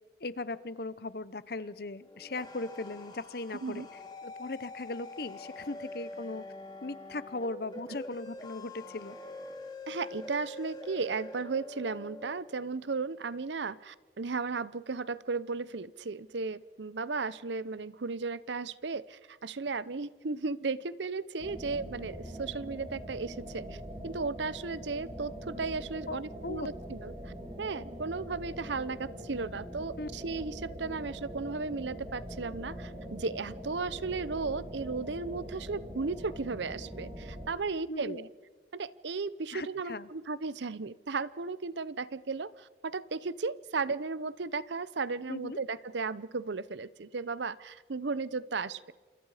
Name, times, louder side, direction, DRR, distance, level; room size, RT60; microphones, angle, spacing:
voice 1, 0.2-3.9 4.2-6.4 6.8-9.2 26.1-26.7 30.0-30.1 37.9-38.3 39.5-40.1 45.3-45.6, left 2 dB, 55° left, 16 dB, 0.8 m, -38 dB
sound 1, 2.0-12.4, left 2 dB, 20° left, 2.2 m, -45 dB
voice 2, 9.9-38.3 38.7-48.9, right 4 dB, 75° right, 18 dB, 0.7 m, -35 dB
sound 2, 21.4-37.5, equal, 20° right, 4.8 m, -43 dB
28.5 x 27.0 x 5.0 m, 1.4 s
head